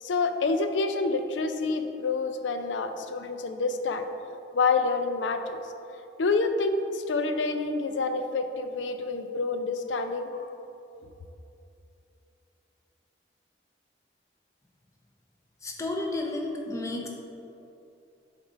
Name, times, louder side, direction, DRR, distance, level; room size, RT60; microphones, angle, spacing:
voice 1, 0.0-4.0 4.5-5.6 6.2-10.4, left 3 dB, 90° left, 8 dB, 0.5 m, -28 dB
voice 2, 15.6-17.1, left 2 dB, 15° left, 1 dB, 0.6 m, -32 dB
7.2 x 3.7 x 5.0 m, 2.8 s
head